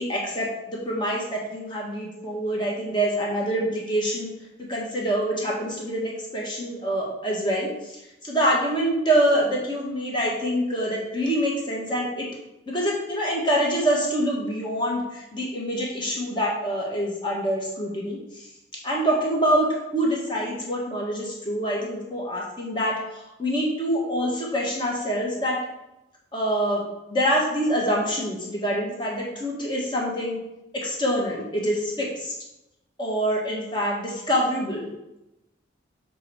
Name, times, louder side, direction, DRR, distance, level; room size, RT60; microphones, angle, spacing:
voice 1, 0.0-4.3 4.7-7.7 8.2-12.3 12.7-18.4 18.8-19.7 19.9-25.6 26.3-26.8 27.1-30.4 30.7-32.3 33.0-34.9, equal, 25° left, -3 dB, 1.5 m, -25 dB
7.2 x 4.0 x 4.7 m, 0.91 s
head